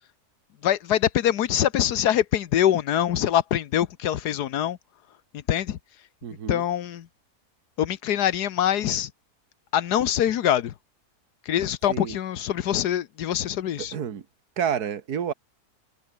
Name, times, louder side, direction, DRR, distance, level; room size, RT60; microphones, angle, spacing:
voice 1, 0.6-4.8 5.3-5.8 6.5-7.1 7.8-9.1 9.7-10.7 11.5-13.9, left 11 dB, 90° left, 1.5 m, -24 dB
voice 2, 6.2-6.6 11.9-12.2 13.8-14.2 14.6-15.3, right 8 dB, 75° right, 2.0 m, -29 dB
omnidirectional pair, 1.7 m